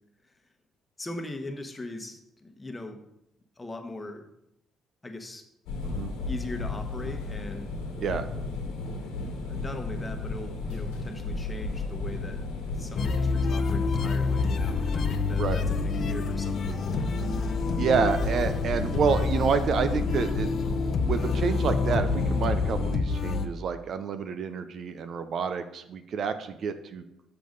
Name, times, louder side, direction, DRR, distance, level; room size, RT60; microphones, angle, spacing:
voice 1, 1.0-3.0 3.6-4.3 5.0-5.4 6.3-7.7 9.4-17.1, left 2 dB, 20° left, 5 dB, 1.1 m, -40 dB
sound 1, 5.7-22.9, left 3 dB, 90° left, 1.5 m, -34 dB
sound 2, 13.0-23.5, left 4 dB, 55° left, 0.7 m, -28 dB
voice 2, 17.8-20.5 20.8-27.0, right 6 dB, 60° right, 10 dB, 0.6 m, -28 dB
7.0 x 6.8 x 3.9 m, 0.81 s
supercardioid pair, 75°, 0 cm